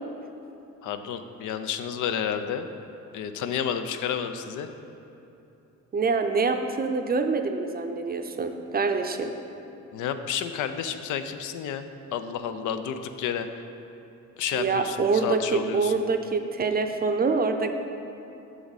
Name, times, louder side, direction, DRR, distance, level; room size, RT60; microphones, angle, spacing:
voice 1, 0.8-2.7 3.1-4.7 9.9-11.9 12.1-13.5 14.4-16.0, left 8 dB, 80° left, 9 dB, 0.5 m, -30 dB
voice 2, 5.9-9.3 14.5-17.7, right 4 dB, 30° right, 6 dB, 0.5 m, -25 dB
8.1 x 6.1 x 4.0 m, 3.0 s
cardioid pair, 90°, 30 cm